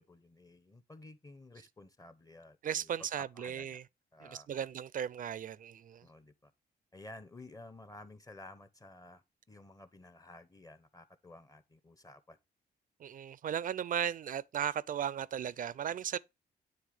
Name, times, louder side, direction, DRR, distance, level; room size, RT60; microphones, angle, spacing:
voice 1, 0.0-2.9 3.2-3.8 4.1-4.7 6.0-6.5 6.9-9.2 9.5-12.4, left 2 dB, 20° left, 0.8 m, -53 dB
voice 2, 2.6-3.8 4.2-6.1 13.0-16.2, right 9 dB, 50° right, 0.4 m, -36 dB
9.3 x 3.3 x 4.9 m
cardioid pair, 100°, 17 cm